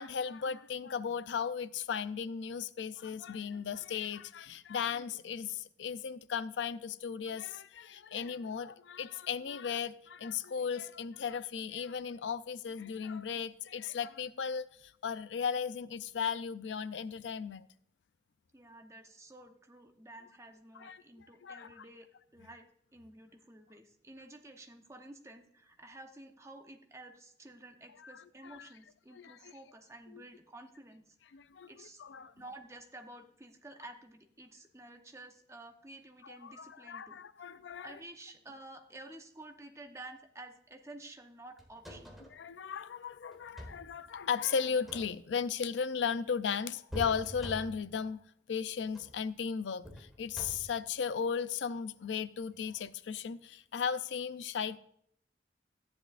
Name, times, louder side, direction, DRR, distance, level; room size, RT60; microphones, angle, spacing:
voice 1, 0.0-17.6 20.8-21.8 28.0-28.2 28.4-28.7 29.1-29.5 30.1-30.2 31.3-32.3 36.2-37.9 42.3-48.2 48.5-54.8, left 6 dB, 90° left, 0.4 m, -36 dB
voice 2, 18.5-31.4 31.7-32.0 32.4-42.2, right 2 dB, 15° right, 0.9 m, -52 dB
sound 1, 41.6-42.4 43.3-43.9 44.7-45.5 46.9-48.0 48.8-49.2 49.8-50.8 52.5-52.7, equal, ahead, 1.6 m, -45 dB
14.0 x 10.0 x 2.5 m
head